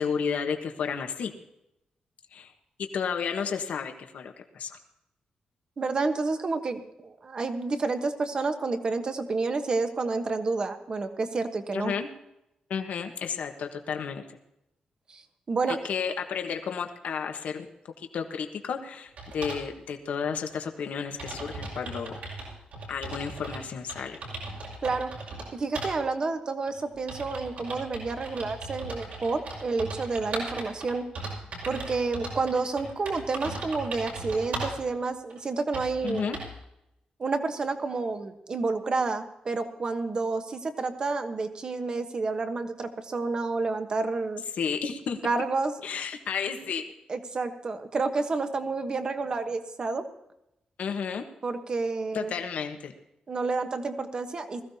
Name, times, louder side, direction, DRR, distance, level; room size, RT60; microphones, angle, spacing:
voice 1, 0.0-1.3 2.3-2.5 2.9-4.8 11.7-12.1 12.7-14.2 15.7-17.7 18.0-22.2 22.9-24.2 36.0-36.4 44.6-45.2 45.8-46.8 50.8-51.2 52.1-52.9, left 6 dB, 70° left, 5 dB, 1.3 m, -32 dB
voice 2, 5.8-11.9 15.1-15.2 15.5-15.8 24.8-25.1 25.5-31.1 31.7-36.3 37.2-44.4 45.2-45.7 47.1-50.0 51.4-52.3 53.3-54.6, right 3 dB, 35° right, 7 dB, 1.2 m, -29 dB
sound 1, 19.2-19.6 20.5-20.6 20.8-20.9 21.2-23.6 23.9-25.5 25.7-25.9 26.7-34.8 35.3-35.4 35.7-36.6, right 2 dB, 70° right, 5.6 m, -37 dB
20.5 x 15.0 x 2.8 m, 0.85 s
wide cardioid pair, 155°, 3 cm